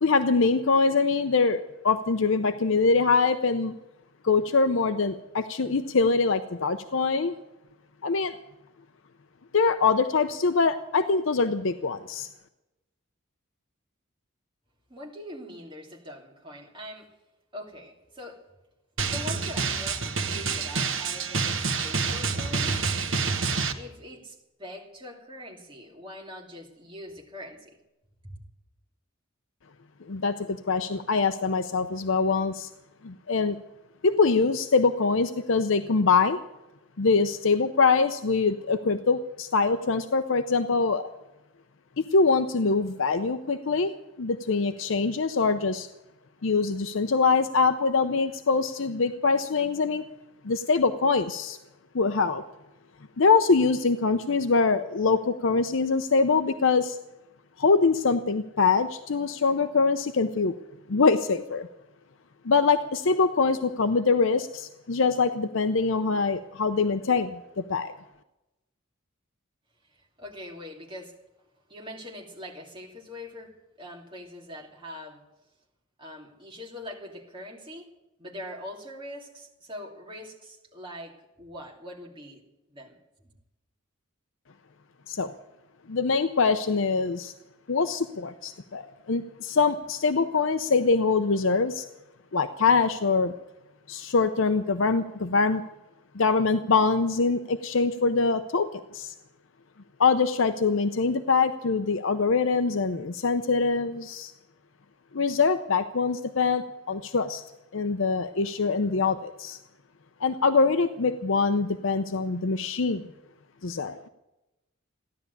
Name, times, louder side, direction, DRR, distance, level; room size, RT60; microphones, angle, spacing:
voice 1, 0.0-3.7 4.2-7.3 8.0-8.4 9.5-12.3 30.1-32.7 33.0-33.6 34.0-36.4 37.0-41.1 42.0-45.9 46.4-50.0 50.4-51.6 51.9-52.4 53.2-57.0 57.6-60.5 60.9-61.7 62.4-67.9 85.1-85.3 85.9-87.3 87.7-91.9 92.3-93.3 93.9-95.6 96.1-99.1 100.0-104.3 105.1-107.4 107.7-109.6 110.2-113.0 113.6-114.1, left 4 dB, 65° left, 10 dB, 0.6 m, -24 dB
voice 2, 14.9-17.1 17.5-18.4 19.0-23.0 23.7-27.8 28.2-28.4 70.0-71.1 71.7-75.2 76.0-77.9 78.2-82.4 82.7-83.3, left 1 dB, 25° right, -1 dB, 2.9 m, -43 dB
Drum, 19.0-23.7, right 5 dB, 60° right, 1.4 m, -28 dB
15.5 x 11.0 x 8.3 m, 0.97 s
head